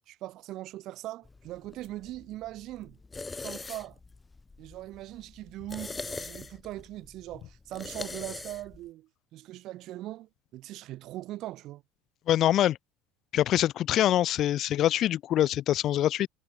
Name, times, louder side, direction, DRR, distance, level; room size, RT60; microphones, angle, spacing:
voice 1, 0.1-3.0 3.4-4.0 4.6-11.8, right 15 dB, 55° right, 1.8 m, -40 dB
sound 1, 1.2-8.9, left 3 dB, 15° left, 0.8 m, -43 dB
voice 2, 12.3-12.8 13.3-16.3, left 12 dB, 50° left, 0.5 m, -24 dB
hypercardioid pair, 75°, 0 cm